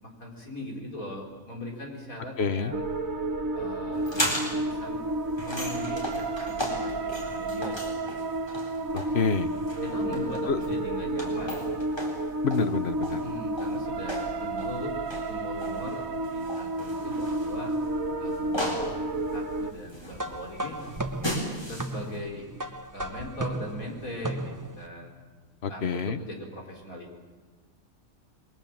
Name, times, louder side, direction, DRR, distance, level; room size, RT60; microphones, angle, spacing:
voice 1, 0.0-2.8 3.5-5.0 5.4-8.2 9.8-11.8 13.2-14.9 15.3-17.7 18.2-20.8 21.5-22.5 22.9-25.1 25.7-27.2, left 1 dB, 80° left, 1 dB, 4.8 m, -40 dB
voice 2, 2.4-2.7 8.9-9.5 10.5-10.6 12.4-13.2 25.6-26.2, left 5 dB, 50° left, 12 dB, 1.2 m, -27 dB
sound 1, 2.7-19.7, right 2 dB, 75° right, 1.7 m, -31 dB
sound 2, 3.9-22.2, equal, 15° left, 4.3 m, -37 dB
sound 3, 20.1-24.9, right 2 dB, 15° right, 0.7 m, -35 dB
28.0 x 21.5 x 7.3 m, 1.3 s
omnidirectional pair, 1.4 m